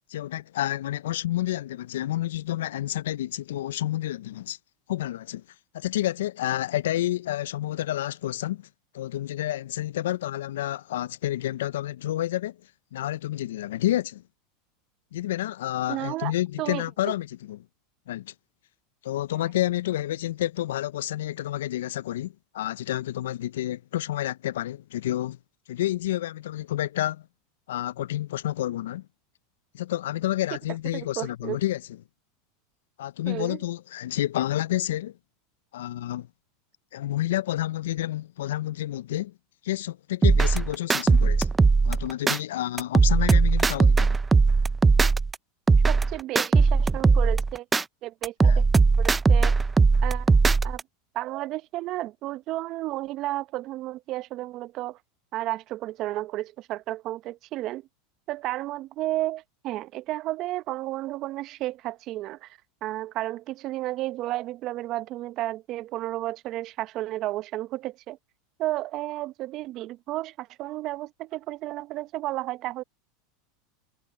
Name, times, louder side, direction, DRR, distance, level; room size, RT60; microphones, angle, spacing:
voice 1, 0.1-4.6 4.9-5.4 5.7-8.7 8.9-12.6 12.9-14.2 15.1-17.6 18.1-18.3 19.0-25.4 25.7-27.2 27.7-29.1 29.7-31.8 33.0-35.2 35.7-36.3 36.9-39.3 39.6-41.5 41.8-44.2 48.4-48.6, left 14 dB, 80° left, 0.5 m, -29 dB
voice 2, 15.9-16.3 16.6-17.1 30.9-31.6 33.3-33.6 45.9-47.7 48.0-48.6 49.0-49.5 50.0-50.3 50.6-50.8 51.1-55.0 55.3-57.9 58.3-68.2 68.6-72.8, right 16 dB, 50° right, 0.9 m, -32 dB
sound 1, 40.2-42.4 42.8-45.4 45.7-47.8 48.2-50.8, right 4 dB, 15° right, 0.6 m, -19 dB
hypercardioid pair, 95°, 0 cm